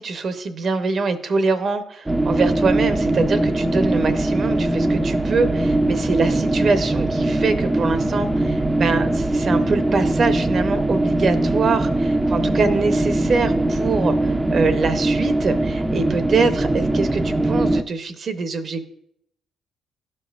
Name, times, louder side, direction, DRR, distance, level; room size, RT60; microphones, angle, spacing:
voice 1, 0.0-18.8, right 4 dB, 55° right, 10 dB, 0.7 m, -24 dB
sound 1, 2.1-17.8, right 2 dB, 15° right, 0.4 m, -21 dB
11.5 x 5.3 x 2.4 m, 0.73 s
supercardioid pair, 60°, 0 cm